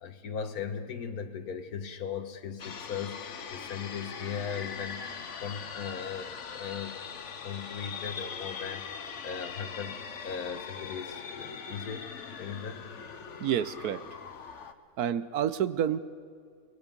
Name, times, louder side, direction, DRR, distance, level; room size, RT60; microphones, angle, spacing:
voice 1, 0.0-5.2 5.4-7.0 7.4-12.9, left 7 dB, 70° left, 8 dB, 1.7 m, -38 dB
sound 1, 2.6-14.7, left 6 dB, 55° left, 1.2 m, -41 dB
voice 2, 13.4-14.0 15.0-16.0, right 9 dB, 75° right, 14 dB, 1.2 m, -29 dB
29.0 x 19.5 x 5.3 m, 2.2 s
omnidirectional pair, 1.7 m